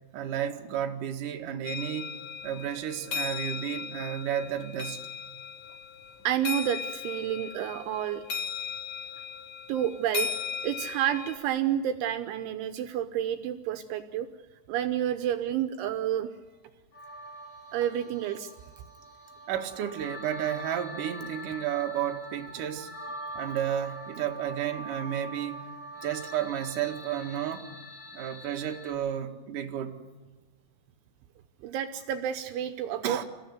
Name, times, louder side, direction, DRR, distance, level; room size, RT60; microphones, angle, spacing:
voice 1, 0.1-2.1 2.4-5.0 19.5-22.9 23.4-25.7 26.0-27.7 28.1-30.0 33.0-33.2, right 10 dB, 55° right, 2.7 m, -32 dB
sound 1, 1.6-11.4, left 6 dB, 45° left, 2.0 m, -37 dB
voice 2, 6.2-8.2 9.7-10.3 10.6-14.3 14.7-16.3 17.7-18.5 31.6-33.2, right 11 dB, 75° right, 3.1 m, -30 dB
sound 2, 16.9-28.9, equal, 60° left, 7.7 m, -43 dB
28.5 x 15.5 x 9.6 m
omnidirectional pair, 5.8 m